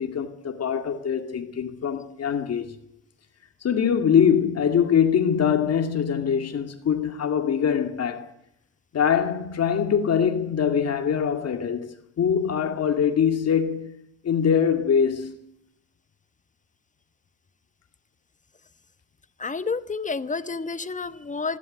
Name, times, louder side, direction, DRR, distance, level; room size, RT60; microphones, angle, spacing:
voice 1, 0.0-2.7 3.6-8.3 8.9-13.9 14.2-15.4, left 7 dB, 55° left, 2.3 m, -23 dB
voice 2, 19.4-21.6, left 4 dB, 25° left, 1.1 m, -30 dB
25.5 x 12.0 x 9.1 m
cardioid pair, 90°, 30 cm